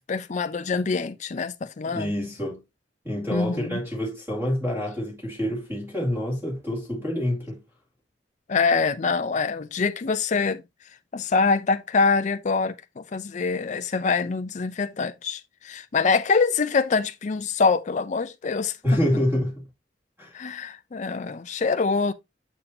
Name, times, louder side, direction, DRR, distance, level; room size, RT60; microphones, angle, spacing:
voice 1, 0.1-2.1 3.3-3.8 8.5-10.6 11.1-18.8 20.3-22.1, left 4 dB, 45° left, 0.5 m, -25 dB
voice 2, 1.8-2.6 3.0-7.6 18.8-19.7 20.2-20.3, equal, 15° right, 2.3 m, -27 dB
7.1 x 7.0 x 2.7 m
head